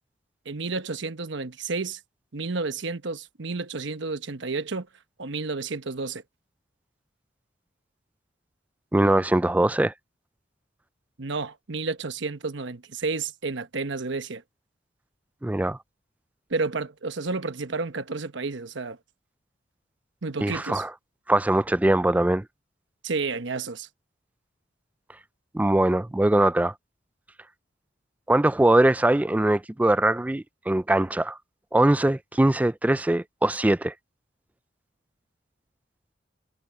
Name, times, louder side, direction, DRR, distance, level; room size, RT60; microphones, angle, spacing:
voice 1, 0.4-2.0 2.3-4.9 5.2-6.2 11.2-14.4 16.5-19.0 20.2-20.8 23.0-23.9, right 3 dB, 65° right, 1.1 m, -31 dB
voice 2, 8.9-9.9 15.4-15.8 20.4-20.9 21.3-22.4 25.5-26.7 28.3-31.4 31.7-33.9, right 1 dB, 10° right, 0.3 m, -22 dB
head